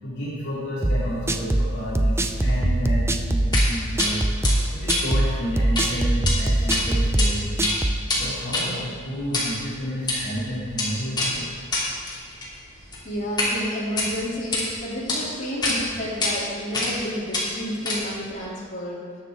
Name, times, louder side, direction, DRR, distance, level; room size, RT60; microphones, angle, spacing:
voice 1, 0.0-7.7 8.1-11.6, equal, 60° left, -7 dB, 2.8 m, -31 dB
sound 1, 0.8-8.0, right 1 dB, 15° right, 0.5 m, -22 dB
sound 2, 3.5-3.7 4.0-4.1 4.4-5.9 6.1-6.3 6.7-7.3 7.5-13.5 13.9-14.6 15.1-15.2 15.6-15.8 16.2-16.3 16.7-17.0 17.3-18.2, left 2 dB, 20° left, 2.8 m, -26 dB
voice 2, 12.7-19.0, equal, 40° left, -8 dB, 3.2 m, -31 dB
19.5 x 7.1 x 3.8 m, 2.2 s
head